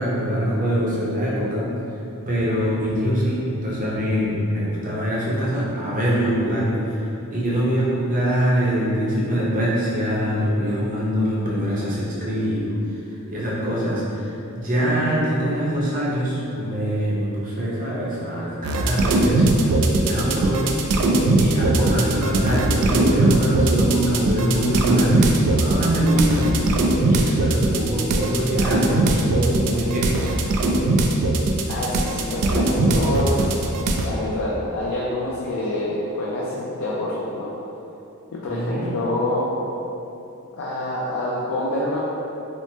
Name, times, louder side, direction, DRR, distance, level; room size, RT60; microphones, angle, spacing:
voice 1, 0.0-1.7 2.3-7.0 7.3-12.7 13.3-20.7 21.4-26.6 27.1-30.3 38.5-38.9, equal, 40° right, -7 dB, 0.6 m, -23 dB
sound 1, 18.6-34.1, right 2 dB, 90° right, 0.3 m, -20 dB
voice 2, 31.7-33.7 34.0-37.5 38.4-39.5 40.5-42.0, left 1 dB, 60° left, -6 dB, 0.4 m, -26 dB
3.1 x 2.0 x 3.2 m, 2.9 s
head